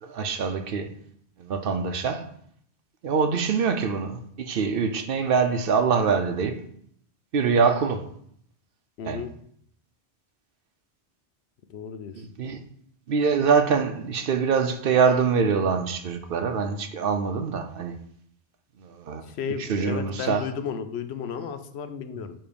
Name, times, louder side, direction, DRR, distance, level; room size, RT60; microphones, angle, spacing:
voice 1, 0.0-0.9 1.4-2.3 3.0-6.6 7.3-8.1 9.0-9.2 12.2-12.6 13.1-18.0 18.8-19.2 19.6-20.4, right 5 dB, 60° right, 0.8 m, -24 dB
voice 2, 9.0-9.3 11.7-12.2 19.2-22.3, left 7 dB, 75° left, 0.9 m, -33 dB
7.0 x 3.0 x 5.1 m
omnidirectional pair, 1.1 m